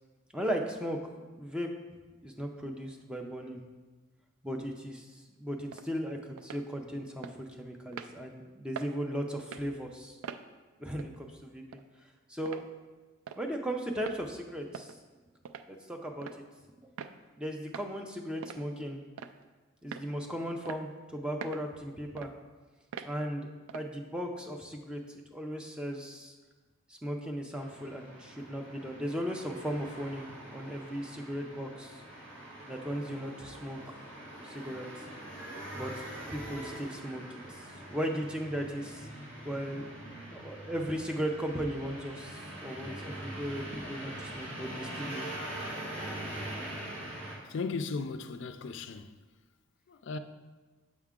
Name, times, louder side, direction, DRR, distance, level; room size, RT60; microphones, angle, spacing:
voice 1, 0.3-1.0 1.3-1.7 2.2-3.6 4.4-10.2 10.8-11.8 12.3-12.6 13.4-15.0 15.7-16.4 17.4-19.0 19.8-22.3 23.0-25.0 25.3-26.3 26.9-32.0 32.7-33.9 34.4-35.0 35.7-36.0 36.3-37.2 37.5-39.1 39.4-39.9 40.3-45.3, equal, 5° right, 0.4 m, -37 dB
sound 1, 5.7-5.9 6.4-6.6 7.2-7.4 7.9-8.1 8.8-8.9 9.4-9.7 10.2-10.4 11.0-11.2 11.7-11.8 12.5-12.7 13.3-13.4 14.0-14.2 14.7-15.0 15.5-15.7 16.2-16.4 17.0-17.2 17.7-17.9 18.4-18.6 19.2-19.4 19.9-20.1 20.7-20.8 21.4-21.7 22.2-22.3 22.9-23.1 23.7-23.9, right 7 dB, 75° right, 0.3 m, -43 dB
sound 2, 27.6-47.4, right 1 dB, 55° right, 2.0 m, -43 dB
voice 2, 47.5-49.2 49.9-50.2, left 4 dB, 55° left, 0.4 m, -36 dB
7.2 x 4.7 x 3.6 m
head